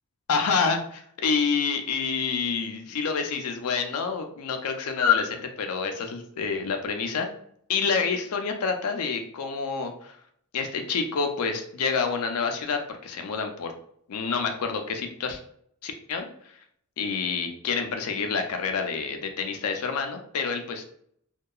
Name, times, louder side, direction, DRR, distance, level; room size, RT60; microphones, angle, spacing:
voice 1, 0.3-7.3 7.7-10.2 10.5-13.7 14.1-15.4 15.8-16.3 17.0-20.8, left 5 dB, 75° left, 5 dB, 0.4 m, -27 dB
2.8 x 2.2 x 2.3 m, 0.66 s
head